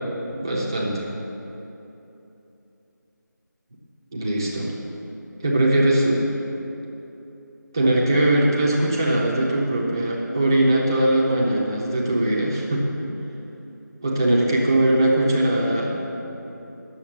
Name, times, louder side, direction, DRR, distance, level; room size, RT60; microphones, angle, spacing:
voice 1, 0.4-1.1 4.1-4.7 5.4-6.2 7.7-12.9 14.0-16.0, right 1 dB, 10° right, -4 dB, 0.7 m, -20 dB
10.0 x 7.0 x 7.2 m, 3.0 s
figure-of-eight pair, 170°, 10 cm